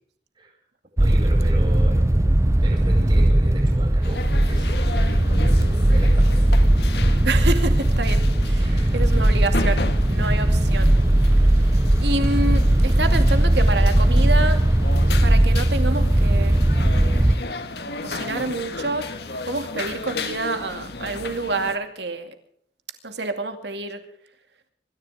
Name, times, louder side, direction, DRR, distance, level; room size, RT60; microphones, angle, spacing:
sound 1, 1.0-17.4, right 1 dB, 15° right, 0.6 m, -18 dB
voice 1, 1.0-2.0 2.3-2.4 2.6-6.4 8.6-8.9, equal, 30° right, 1 dB, 4.8 m, -36 dB
sound 2, 4.0-21.8, left 3 dB, 70° left, 1.6 m, -34 dB
voice 2, 7.2-11.0 12.0-14.6 15.2-16.6 17.8-19.1 19.5-22.3 23.0-24.0, right 2 dB, 75° right, 7 dB, 2.4 m, -28 dB
25.5 x 14.5 x 3.6 m, 0.65 s
head